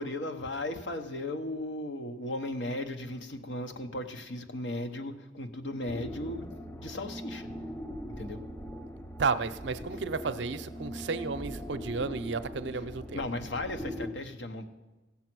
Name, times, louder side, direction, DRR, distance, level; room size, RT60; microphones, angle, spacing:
voice 1, 0.0-7.5 8.2-8.4 13.1-14.7, left 1 dB, 75° left, 7 dB, 1.0 m, -36 dB
sound 1, 5.9-14.1, equal, 10° left, 0.5 m, -41 dB
voice 2, 9.2-13.2, right 4 dB, 65° right, 11 dB, 0.6 m, -32 dB
16.5 x 7.2 x 6.1 m, 1.2 s
head